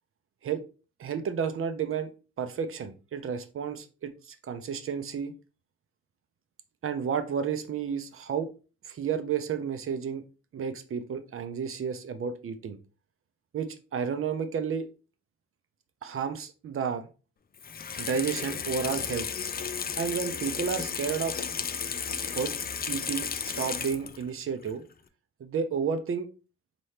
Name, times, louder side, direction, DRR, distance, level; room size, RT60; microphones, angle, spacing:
voice 1, 1.0-2.1 2.4-5.3 6.8-8.5 8.8-10.2 10.5-12.8 13.5-14.9 16.0-17.1 18.0-19.3 20.0-21.4 22.2-22.5 22.9-24.8 25.4-26.3, right 6 dB, 45° right, 9 dB, 0.7 m, -31 dB
Water tap faucet / Sink (filling or washing), 17.6-24.3 24.7-24.8, left 7 dB, 30° left, 0.5 m, -33 dB
4.2 x 3.1 x 3.2 m, 0.34 s
cardioid pair, 90°, 30 cm